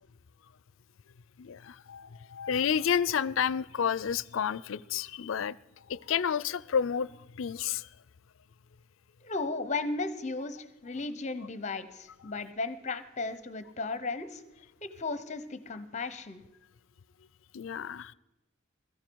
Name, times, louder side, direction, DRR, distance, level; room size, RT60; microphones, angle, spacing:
voice 1, 1.4-5.6 5.9-7.9 17.5-18.1, left 7 dB, 75° left, 0.4 m, -30 dB
voice 2, 9.2-14.4 14.8-16.4, left 3 dB, 35° left, 0.8 m, -35 dB
16.5 x 14.0 x 4.6 m
head